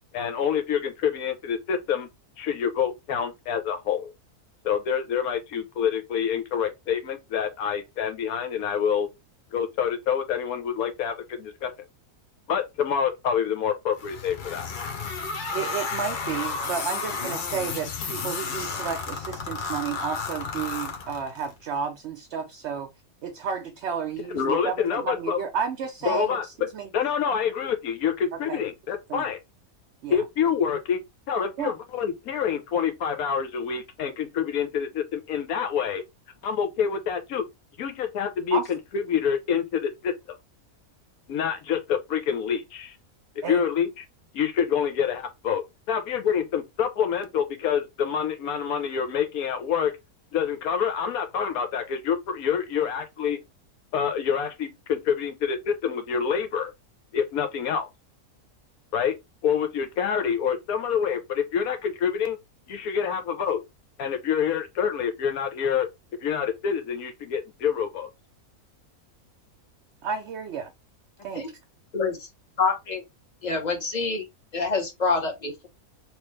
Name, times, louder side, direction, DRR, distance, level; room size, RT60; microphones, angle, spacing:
voice 1, 0.1-2.1 2.4-4.1 4.6-9.1 9.5-11.7 12.5-14.7 24.3-25.4 26.0-26.7 26.9-29.4 30.1-31.0 31.3-36.0 36.4-37.5 37.8-40.1 41.3-43.0 43.4-44.0 44.3-49.9 50.3-53.4 53.9-56.7 57.1-57.9 58.9-59.2 59.4-62.4 62.7-63.6 64.0-65.9 66.2-68.1, left 7 dB, 75° left, 1.2 m, -27 dB
sound 1, 14.0-21.5, left 4 dB, 50° left, 0.6 m, -32 dB
voice 2, 15.5-22.9 23.2-26.9 28.3-28.6 29.1-29.3 30.0-30.2 31.6-31.7 38.5-38.7 43.4-43.6 70.0-70.7 71.2-71.4, right 6 dB, 65° right, 0.7 m, -32 dB
voice 3, 71.9-72.3 72.6-73.0 73.4-74.2 74.5-75.7, left 4 dB, 30° left, 1.0 m, -26 dB
3.1 x 3.0 x 3.2 m
omnidirectional pair, 1.5 m